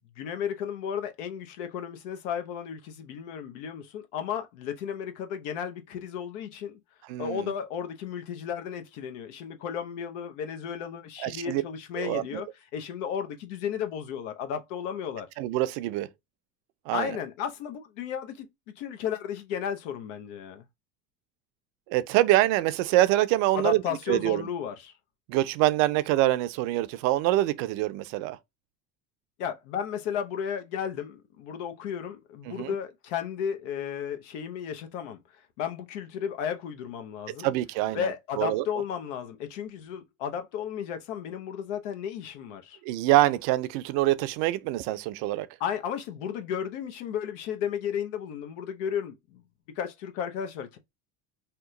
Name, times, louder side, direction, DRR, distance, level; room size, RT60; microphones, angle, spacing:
voice 1, 0.2-6.8 7.2-12.5 12.7-15.3 16.9-18.5 18.8-20.6 23.5-24.9 29.4-37.5 37.9-42.8 45.6-49.4 49.7-50.8, left 8 dB, 85° left, 0.8 m, -34 dB
voice 2, 7.1-7.5 11.2-11.6 12.0-12.4 15.4-16.1 16.9-17.1 21.9-23.8 24.1-24.4 25.3-28.4 32.5-32.7 37.3-38.1 38.4-38.6 42.9-45.5, right 15 dB, 70° right, 0.5 m, -25 dB
2.9 x 2.2 x 3.6 m
supercardioid pair, 110°, 35 cm